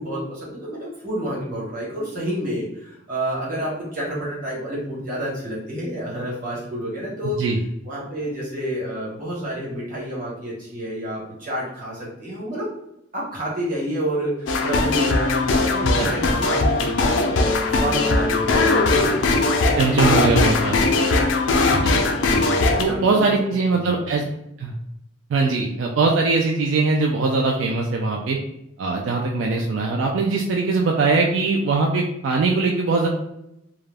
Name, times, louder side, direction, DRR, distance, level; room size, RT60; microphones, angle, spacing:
voice 1, 0.0-7.4 7.8-12.7 13.1-17.4 17.7-19.1 22.2-23.6 23.8-24.0, equal, 45° right, -6 dB, 1.2 m, -29 dB
sound 1, 14.5-22.8, left 3 dB, 80° left, 0.4 m, -20 dB
voice 2, 19.8-20.8 21.8-22.0 22.8-24.2 24.6-24.7 25.3-28.4 28.8-33.1, right 3 dB, 80° right, 1 dB, 0.3 m, -21 dB
2.3 x 2.0 x 3.3 m, 0.83 s
head